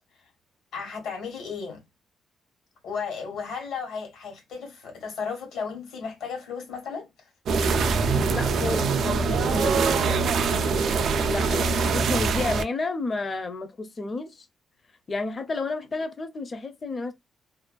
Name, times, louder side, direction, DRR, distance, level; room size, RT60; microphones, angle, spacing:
voice 1, 0.7-1.8 2.8-7.3 11.5-11.7, left 5 dB, 80° left, 1.2 m, -34 dB
sound 1, 7.5-12.6, right 4 dB, 60° right, 0.3 m, -23 dB
voice 2, 8.3-10.1 11.3-14.5 15.1-17.1, left 3 dB, 30° left, 0.5 m, -31 dB
2.4 x 2.2 x 2.2 m
cardioid pair, 135°, 0 cm